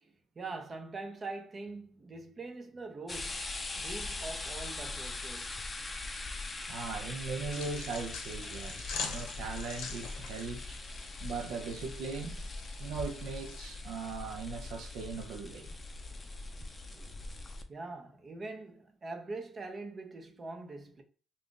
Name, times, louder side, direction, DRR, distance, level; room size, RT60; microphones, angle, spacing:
voice 1, 0.0-3.5 3.8-5.6 16.1-16.2 16.9-17.3 17.7-21.0, right 3 dB, 35° right, 0.6 m, -43 dB
sound 1, 3.1-17.6, left 2 dB, 25° left, 0.5 m, -41 dB
voice 2, 6.7-10.8 11.2-12.5 12.8-15.7, right 4 dB, 75° right, 0.6 m, -39 dB
sound 2, 7.5-13.7, left 5 dB, 75° left, 0.7 m, -44 dB
2.5 x 2.5 x 3.6 m
cardioid pair, 90°, 0 cm